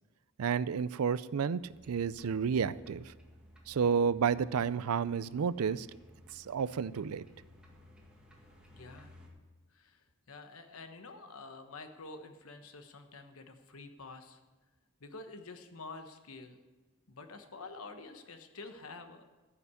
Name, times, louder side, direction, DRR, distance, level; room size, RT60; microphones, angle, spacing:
voice 1, 0.4-1.6 1.9-3.1 3.7-5.9 6.3-7.2, right 6 dB, 85° right, 18 dB, 0.4 m, -31 dB
sound 1, 1.6-9.3, left 1 dB, 5° right, 1.8 m, -58 dB
voice 2, 8.7-9.1 9.7-14.4 15.0-16.6 17.1-19.2, left 3 dB, 75° left, 7 dB, 1.2 m, -48 dB
14.0 x 5.9 x 8.3 m, 1.2 s
head